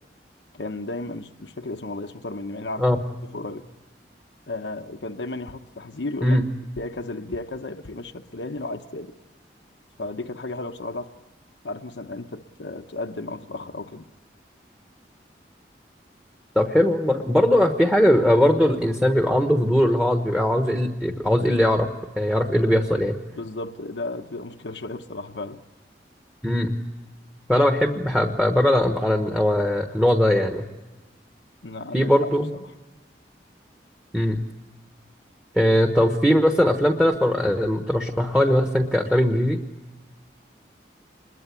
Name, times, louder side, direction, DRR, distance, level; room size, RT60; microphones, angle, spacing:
voice 1, 0.5-2.9 3.2-3.7 4.5-6.4 6.8-9.1 10.0-11.1 11.6-14.0 23.3-25.6 31.6-32.1 32.5-32.7, left 2 dB, 90° left, 6 dB, 1.0 m, -34 dB
voice 2, 16.5-21.9 22.1-23.2 26.4-26.8 27.5-30.7 31.9-32.5 34.1-34.4 35.5-39.6, equal, 5° right, 4 dB, 1.2 m, -20 dB
26.5 x 22.0 x 8.4 m, 1.1 s
head